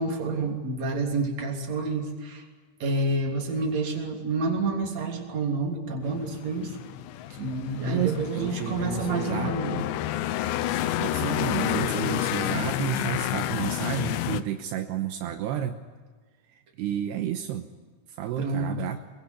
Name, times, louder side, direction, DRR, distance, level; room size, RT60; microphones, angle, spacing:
voice 1, 0.0-2.4 2.8-6.8 7.4-9.9 18.4-18.8, right 3 dB, 40° right, 2 dB, 4.0 m, -29 dB
sound 1, 6.0-14.4, left 13 dB, 85° left, 3.3 m, -29 dB
voice 2, 7.9-9.9 11.0-15.8 16.5-17.7 18.1-19.0, right 10 dB, 80° right, 7 dB, 3.0 m, -31 dB
24.5 x 21.5 x 9.9 m, 1.4 s
omnidirectional pair, 5.0 m